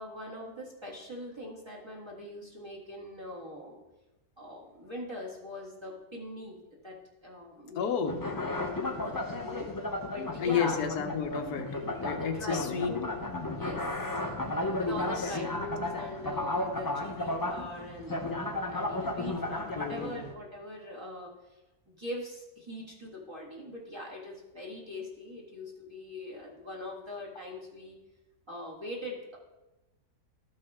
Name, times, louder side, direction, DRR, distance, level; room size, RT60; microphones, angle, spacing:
voice 1, 0.0-3.8 4.4-7.0 7.2-8.2 8.5-9.7 10.1-10.8 12.1-13.1 13.5-14.2 14.8-21.3 21.9-28.0 28.5-29.4, left 1 dB, 15° right, -4 dB, 1.6 m, -42 dB
voice 2, 7.7-8.2 10.4-11.8 12.0-12.9 14.9-15.3 19.7-20.3, left 7 dB, 85° left, 5 dB, 1.5 m, -31 dB
sound 1, 8.1-20.3, left 2 dB, 25° left, 0.5 m, -34 dB
13.5 x 5.5 x 3.6 m, 1.0 s
omnidirectional pair, 1.6 m